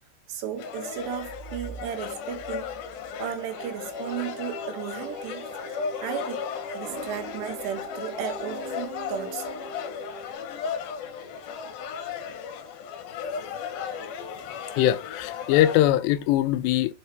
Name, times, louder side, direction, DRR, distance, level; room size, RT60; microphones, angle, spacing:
voice 1, 0.3-2.7 3.2-5.5 6.0-6.5 6.7-9.8, right 9 dB, 85° right, 3.6 m, -34 dB
sound 1, 0.6-15.8, left 7 dB, 70° left, 2.8 m, -35 dB
sound 2, 3.5-10.3, right 3 dB, 60° right, 2.9 m, -43 dB
voice 2, 13.1-13.5 14.8-16.9, left 13 dB, 90° left, 2.9 m, -22 dB
7.2 x 5.5 x 4.5 m
omnidirectional pair, 4.9 m